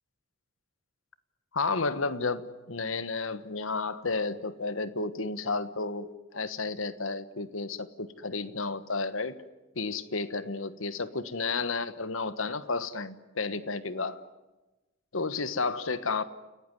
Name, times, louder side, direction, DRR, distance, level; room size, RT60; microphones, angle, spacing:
voice 1, 1.5-9.4 9.7-14.2 15.1-16.2, left 3 dB, 80° left, 13 dB, 1.3 m, -32 dB
29.5 x 17.5 x 9.8 m, 1.1 s
head